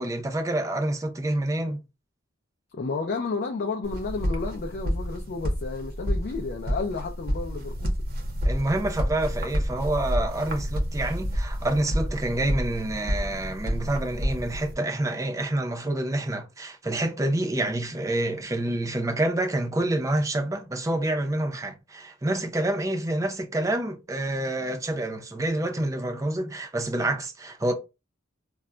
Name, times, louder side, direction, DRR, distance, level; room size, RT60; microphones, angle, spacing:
voice 1, 0.0-1.8 8.4-27.7, right 1 dB, 15° right, 0.5 m, -27 dB
voice 2, 2.7-7.9, left 4 dB, 50° left, 0.4 m, -31 dB
sound 1, 3.8-14.7, equal, 50° right, 0.7 m, -29 dB
2.2 x 2.0 x 3.7 m
head